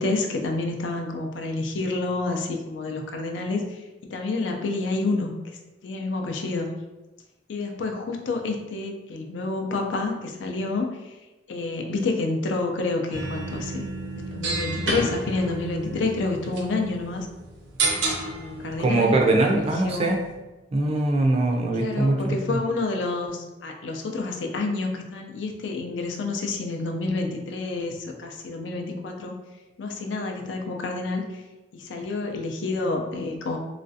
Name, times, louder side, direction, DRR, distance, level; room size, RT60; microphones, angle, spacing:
voice 1, 0.0-3.6 4.1-5.3 5.8-6.7 7.5-10.9 11.5-13.9 14.2-17.3 18.2-19.2 19.4-20.1 21.8-29.3 29.8-31.2 31.7-33.6, left 3 dB, 75° left, 2 dB, 0.4 m, -28 dB
sound 1, 13.1-20.3, right 2 dB, 80° right, 0.5 m, -31 dB
voice 2, 18.8-20.2 20.7-22.6, right 2 dB, 35° right, 1 dB, 0.4 m, -22 dB
3.1 x 2.4 x 2.6 m, 1.1 s
head